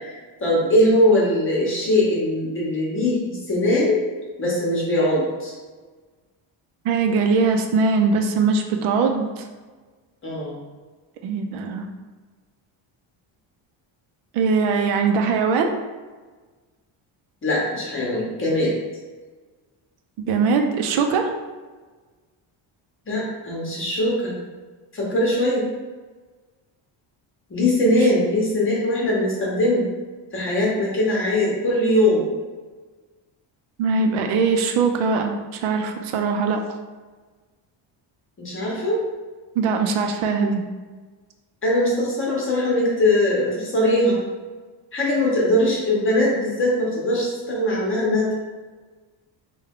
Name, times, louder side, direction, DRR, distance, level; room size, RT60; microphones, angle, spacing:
voice 1, 0.0-4.0 4.4-5.5 10.2-10.6 17.4-18.7 23.1-24.3 24.9-25.7 27.5-29.9 30.3-32.3 38.4-39.1 41.6-44.2 44.9-48.3, left 1 dB, 25° left, -4 dB, 0.8 m, -21 dB
voice 2, 6.8-9.4 11.2-11.9 14.3-15.8 20.3-21.3 33.8-36.6 39.6-40.6, right 4 dB, 85° right, 4 dB, 0.6 m, -21 dB
3.4 x 2.3 x 3.5 m, 1.4 s
cardioid pair, 160°, 48 cm